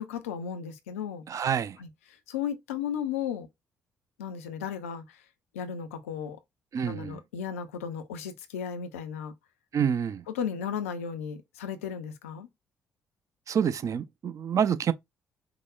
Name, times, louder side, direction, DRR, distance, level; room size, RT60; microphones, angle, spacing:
voice 1, 0.0-1.2 1.8-1.9 2.3-3.5 4.2-5.2 5.5-6.4 6.9-9.3 10.3-12.5, left 8 dB, 85° left, 0.5 m, -35 dB
voice 2, 1.3-1.8 6.7-7.2 9.7-10.2 13.5-14.9, right 8 dB, 50° right, 0.5 m, -27 dB
4.7 x 2.0 x 2.3 m
hypercardioid pair, 45°, 7 cm